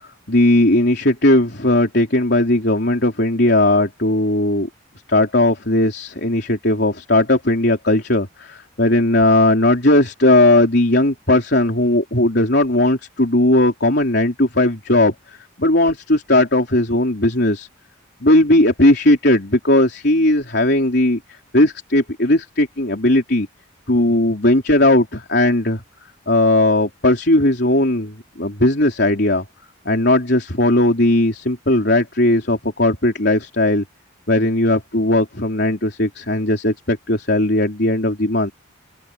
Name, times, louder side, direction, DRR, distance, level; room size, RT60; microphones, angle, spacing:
voice 1, 0.3-4.7 5.1-17.7 18.2-23.5 23.9-25.8 26.3-29.4 29.9-33.8 34.3-38.5, left 1 dB, 55° left, 4.0 m, -17 dB
open air
head